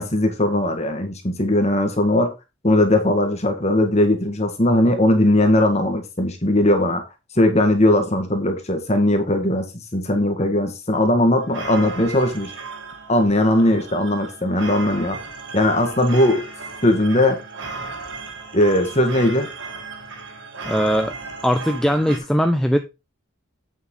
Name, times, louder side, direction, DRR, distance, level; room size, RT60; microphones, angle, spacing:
voice 1, 0.0-2.3 2.6-7.0 7.4-9.7 9.9-12.5 13.1-15.2 15.5-16.4 16.8-17.4 18.5-19.5, left 1 dB, 30° left, 1.8 m, -19 dB
sound 1, 11.4-22.2, right 3 dB, 60° right, 2.3 m, -35 dB
voice 2, 20.7-21.2 21.4-22.8, equal, ahead, 0.6 m, -19 dB
8.9 x 7.1 x 3.8 m
head